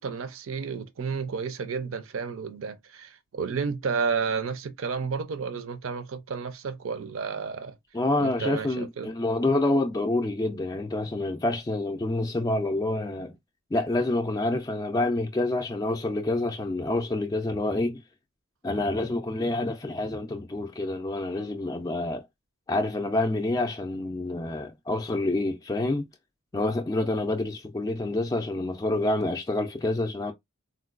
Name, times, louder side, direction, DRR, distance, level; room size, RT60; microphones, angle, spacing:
voice 1, 0.0-7.8 8.2-9.1, right 5 dB, 65° right, 0.5 m, -31 dB
voice 2, 7.9-13.3 13.7-18.0 18.6-22.3 22.7-26.1 26.5-30.3, left 2 dB, 15° left, 0.4 m, -27 dB
3.8 x 2.2 x 2.4 m
head